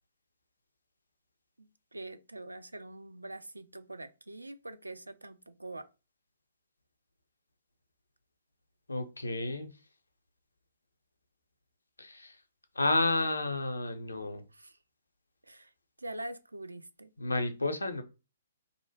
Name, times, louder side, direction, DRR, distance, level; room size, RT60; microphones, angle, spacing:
voice 1, 1.6-5.9 14.5-14.7 15.5-15.7 16.0-17.1, right 1 dB, 80° right, 0.3 m, -44 dB
voice 2, 8.9-9.7 12.0-12.4 12.8-14.5 17.2-18.0, left 2 dB, 75° left, 0.5 m, -31 dB
2.6 x 2.1 x 2.7 m
figure-of-eight pair, 120°, 0 cm